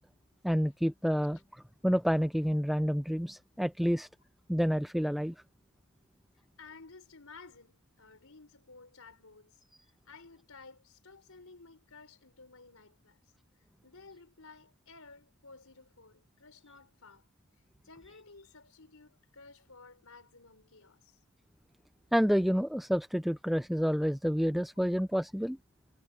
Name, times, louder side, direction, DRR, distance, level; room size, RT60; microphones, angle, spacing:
voice 1, 0.4-4.1 4.5-5.3 22.1-25.6, equal, ahead, 0.4 m, -29 dB
voice 2, 6.6-9.6 10.0-13.2 13.6-17.3 17.8-21.2, left 4 dB, 75° left, 4.4 m, -54 dB
head